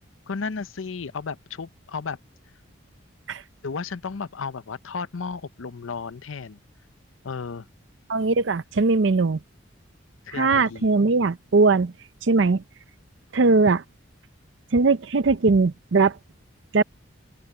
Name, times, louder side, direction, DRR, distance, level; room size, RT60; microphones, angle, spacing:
voice 1, 0.3-2.2 3.6-6.6 7.2-7.7 10.3-10.9, left 5 dB, 85° left, 0.6 m, -33 dB
voice 2, 8.1-9.4 10.3-11.9 12.2-12.6 13.3-13.8 14.7-16.2 16.7-16.8, right 3 dB, 65° right, 0.6 m, -20 dB
open air
head